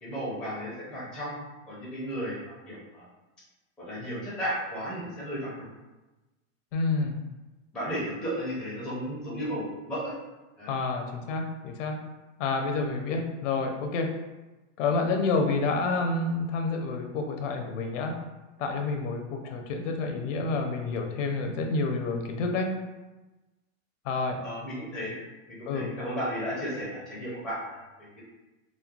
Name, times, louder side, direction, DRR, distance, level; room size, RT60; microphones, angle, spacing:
voice 1, 0.0-3.1 3.8-5.6 7.7-10.1 10.6-10.7 24.4-25.1 25.5-28.2, equal, ahead, -8 dB, 0.4 m, -34 dB
voice 2, 6.7-7.2 10.7-11.9 12.4-14.1 14.8-18.1 18.6-22.7 24.0-24.4 25.7-25.9, left 3 dB, 70° left, 3 dB, 0.6 m, -29 dB
3.1 x 2.0 x 2.3 m, 1.1 s
supercardioid pair, 155°, 38 cm